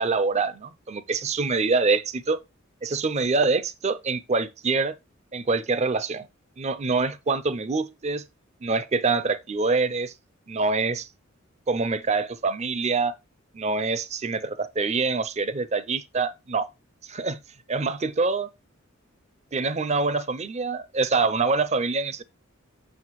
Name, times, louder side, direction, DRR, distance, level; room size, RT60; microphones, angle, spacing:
voice 1, 0.0-2.4 2.8-4.9 5.3-6.3 6.6-8.2 8.6-10.1 10.5-11.1 11.7-13.1 13.5-16.7 17.1-17.4 17.7-18.5 19.5-22.2, right 4 dB, 35° right, 0.5 m, -25 dB
7.7 x 6.1 x 3.0 m
head